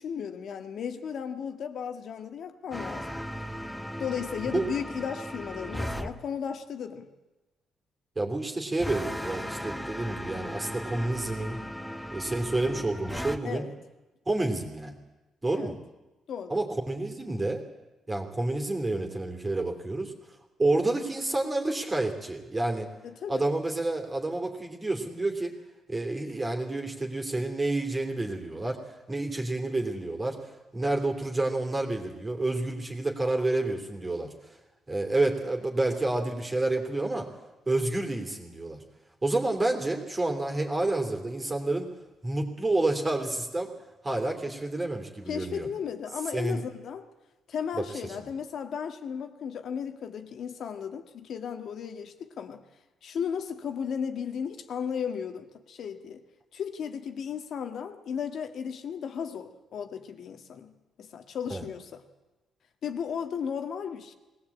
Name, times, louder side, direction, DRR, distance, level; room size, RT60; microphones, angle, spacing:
voice 1, 0.0-3.2 4.0-7.1 13.4-13.7 15.5-15.7 16.3-16.6 23.0-23.5 45.3-47.1 47.5-52.6 53.0-56.2 56.5-60.7 61.0-62.0 62.8-64.1, left 7 dB, 60° left, 1.9 m, -35 dB
sound 1, 2.7-6.1 8.8-13.4, equal, 5° left, 1.3 m, -36 dB
voice 2, 8.1-11.6 12.1-13.7 14.3-15.0 15.4-15.8 16.5-17.6 18.1-20.1 20.6-22.9 23.3-25.5 25.9-28.8 29.1-34.5 34.9-37.3 37.7-38.8 39.2-41.9 42.2-43.7 44.0-45.7 46.3-46.6 47.8-47.9 61.5-61.6, right 2 dB, 20° right, 3.0 m, -29 dB
21.5 x 17.5 x 8.6 m
cardioid pair, 115°, 0 cm